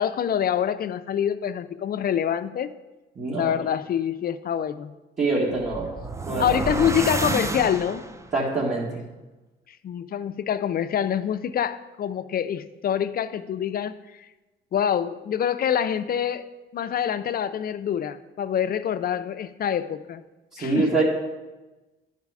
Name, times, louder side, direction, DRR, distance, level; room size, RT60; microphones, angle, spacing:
voice 1, 0.0-2.7 3.4-4.9 6.4-8.0 9.7-14.0 14.7-16.5 16.7-20.2 20.6-20.9, left 9 dB, 50° left, 12 dB, 0.4 m, -26 dB
voice 2, 3.2-3.5 5.2-5.9 6.3-6.6 8.3-8.9 20.5-21.0, right 3 dB, 35° right, -7 dB, 1.6 m, -24 dB
sound 1, 5.5-8.3, right 3 dB, 15° right, 0.4 m, -29 dB
11.0 x 4.1 x 4.8 m, 1.1 s
cardioid pair, 90°, 20 cm